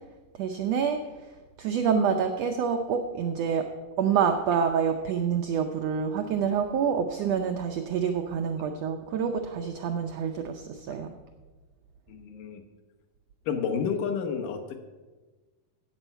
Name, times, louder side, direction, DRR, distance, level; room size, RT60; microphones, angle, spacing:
voice 1, 0.4-1.0 1.6-3.7 4.0-11.1, right 7 dB, 85° right, 5 dB, 1.4 m, -27 dB
voice 2, 12.1-12.6 13.4-14.8, left 6 dB, 80° left, 6 dB, 2.6 m, -30 dB
16.0 x 7.0 x 5.5 m, 1.3 s
omnidirectional pair, 3.8 m